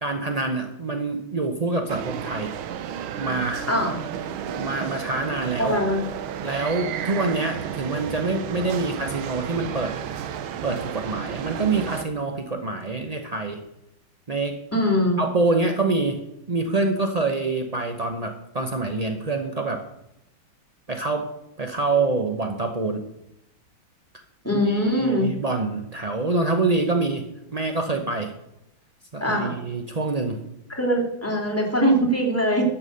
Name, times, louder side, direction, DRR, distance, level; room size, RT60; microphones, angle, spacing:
voice 1, 0.0-2.5 3.2-3.7 4.5-5.8 6.4-9.9 10.6-13.6 14.3-14.6 15.2-16.2 16.5-19.8 20.9-21.3 21.6-23.0 24.5-27.2 27.5-28.3 29.1-30.4, right 3 dB, 50° right, 5 dB, 0.4 m, -26 dB
sound 1, 1.9-12.1, right 8 dB, 90° right, 1.7 m, -32 dB
voice 2, 5.6-6.0 14.7-15.2 24.4-25.3 29.2-29.5 30.7-32.6, equal, 5° left, -1 dB, 2.6 m, -22 dB
12.5 x 7.3 x 6.6 m, 0.86 s
omnidirectional pair, 2.2 m